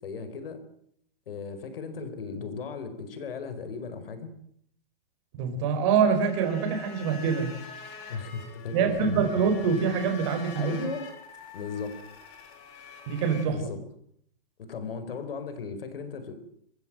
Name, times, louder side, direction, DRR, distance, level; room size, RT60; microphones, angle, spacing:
voice 1, 0.0-0.6 1.3-4.3 8.1-9.2 10.5-11.1 11.5-12.0 13.5-13.8 14.6-16.3, left 5 dB, 70° left, 10 dB, 4.9 m, -36 dB
voice 2, 5.3-7.5 8.7-10.8 13.1-13.6, right 6 dB, 30° right, 5 dB, 4.7 m, -25 dB
sound 1, 6.2-13.5, left 5 dB, 30° left, 3.4 m, -45 dB
25.0 x 15.5 x 9.0 m, 0.68 s
hypercardioid pair, 175°, 30 cm